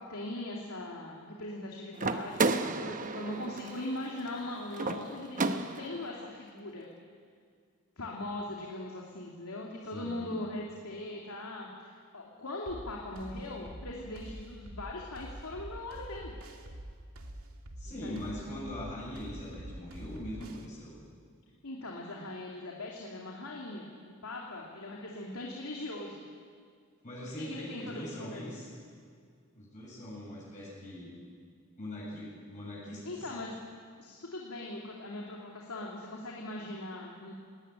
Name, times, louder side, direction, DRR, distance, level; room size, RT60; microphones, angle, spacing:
voice 1, 0.0-6.9 8.0-16.3 17.9-18.2 21.6-26.3 27.4-28.4 33.0-33.5 34.0-37.3, left 2 dB, 85° left, -2 dB, 2.8 m, -40 dB
sound 1, 2.0-6.1, right 3 dB, 40° right, 0.9 m, -33 dB
voice 2, 9.9-10.3 17.8-20.9 27.0-28.7 29.6-31.1 31.8-33.3, left 1 dB, 35° left, -5 dB, 7.9 m, -41 dB
sound 2, 12.7-20.7, right 1 dB, 75° right, 2.3 m, -45 dB
19.0 x 18.0 x 10.0 m, 2.1 s
head